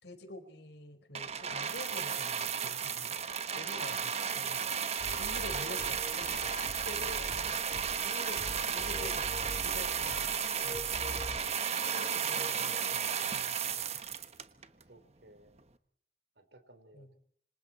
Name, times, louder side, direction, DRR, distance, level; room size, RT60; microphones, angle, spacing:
voice 1, 0.0-3.2 3.5-4.6 5.1-6.5 6.8-10.3 10.6-11.0 11.8-13.6 13.8-14.0 16.9-17.1, left 1 dB, 75° left, 8 dB, 4.9 m, -48 dB
sound 1, 1.1-14.8 15.6-15.7, right 7 dB, 35° right, 1.2 m, -34 dB
sound 2, 5.0-11.4, left 1 dB, 45° left, 2.8 m, -45 dB
voice 2, 5.0-5.8 14.8-15.7 16.4-17.2, right 1 dB, 70° right, 9 dB, 3.9 m, -59 dB
sound 3, 5.3-13.4, equal, 20° left, 1.4 m, -51 dB
28.0 x 26.0 x 4.3 m, 0.63 s
head